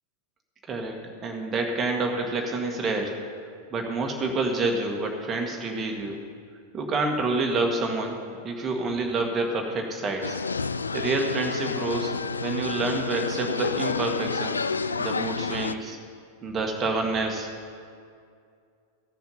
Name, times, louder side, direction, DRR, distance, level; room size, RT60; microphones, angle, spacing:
voice 1, 1.2-3.1 3.7-6.2 6.7-8.2 8.4-10.4 10.9-12.1 12.4-14.6 15.0-16.0 16.4-17.5, right 3 dB, 20° right, 1 dB, 1.7 m, -28 dB
sound 1, 10.2-15.7, left 4 dB, 75° left, 0.3 m, -29 dB
15.0 x 6.9 x 5.6 m, 2.3 s
figure-of-eight pair, 90°, 0 cm